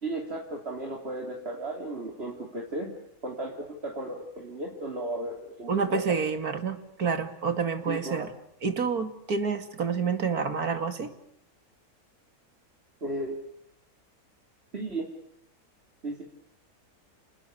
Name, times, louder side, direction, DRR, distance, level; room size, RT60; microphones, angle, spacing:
voice 1, 0.0-2.9 3.2-6.0 7.9-8.3 13.0-13.4 14.7-15.1 16.0-16.2, right 2 dB, 40° right, 0 dB, 3.4 m, -35 dB
voice 2, 5.7-8.3 8.6-11.1, right 5 dB, 80° right, 9 dB, 2.8 m, -28 dB
29.0 x 20.5 x 8.4 m, 0.77 s
omnidirectional pair, 1.6 m